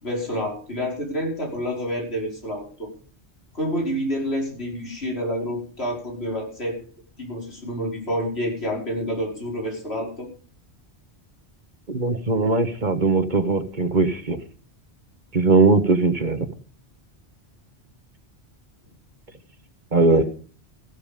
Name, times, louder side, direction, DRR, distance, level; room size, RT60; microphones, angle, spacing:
voice 1, 0.0-2.7 3.5-6.8 7.2-10.3 20.1-20.2, equal, 70° left, 0 dB, 5.6 m, -28 dB
voice 2, 11.9-14.4 15.3-16.5 19.9-20.2, right 3 dB, 45° right, 9 dB, 1.5 m, -20 dB
15.0 x 12.5 x 5.2 m, 0.40 s
omnidirectional pair, 1.1 m